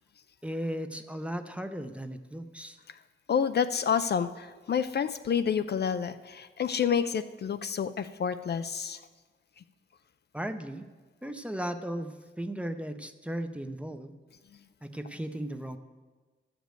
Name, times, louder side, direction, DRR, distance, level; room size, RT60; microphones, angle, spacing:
voice 1, 0.4-2.8 10.3-10.8 11.2-14.1 14.8-15.8, right 1 dB, 5° right, 8 dB, 0.6 m, -36 dB
voice 2, 3.3-9.0, left 7 dB, 50° left, 11 dB, 0.4 m, -29 dB
12.5 x 5.2 x 7.7 m, 1.3 s
wide cardioid pair, 125°, 21 cm